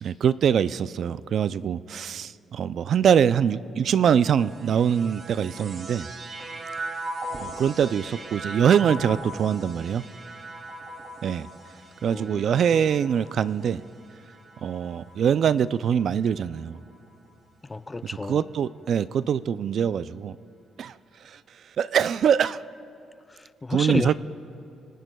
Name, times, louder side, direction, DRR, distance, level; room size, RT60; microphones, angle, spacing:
voice 1, 0.0-6.1 7.4-10.0 11.2-11.5 12.0-13.8 14.6-16.8 18.3-20.4 20.8-20.9 21.3-21.4 21.8-22.6 23.7-24.1, right 8 dB, 60° right, 16 dB, 0.3 m, -23 dB
sound 1, 4.1-15.6 16.4-17.1, right 1 dB, 45° right, 2.7 m, -39 dB
voice 2, 12.0-12.4 17.6-18.4 23.3-24.1, left 2 dB, 20° left, 12 dB, 0.5 m, -31 dB
27.5 x 21.5 x 2.3 m, 2.6 s
cardioid pair, 90°, 0 cm